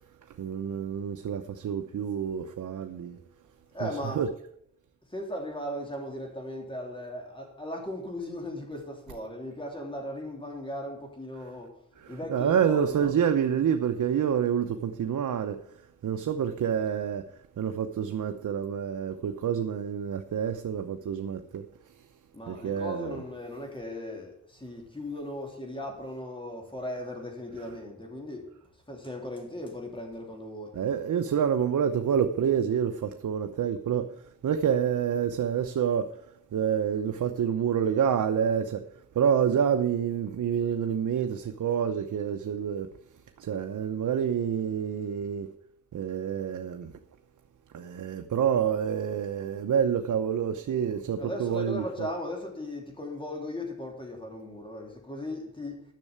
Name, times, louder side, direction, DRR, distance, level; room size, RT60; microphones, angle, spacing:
voice 1, 0.4-3.2 3.8-3.9 4.1-4.3 12.0-15.8 16.0-17.2 17.6-21.6 22.5-23.2 30.7-36.1 36.5-38.9 39.1-42.9 43.4-45.5 45.9-46.9 47.7-52.1, right 8 dB, 75° right, 0.8 m, -28 dB
voice 2, 3.7-4.3 5.1-11.8 12.1-13.1 22.3-28.5 28.9-30.7 51.2-55.8, left 1 dB, 15° left, 3.2 m, -37 dB
10.5 x 6.6 x 8.2 m
cardioid pair, 90°, 31 cm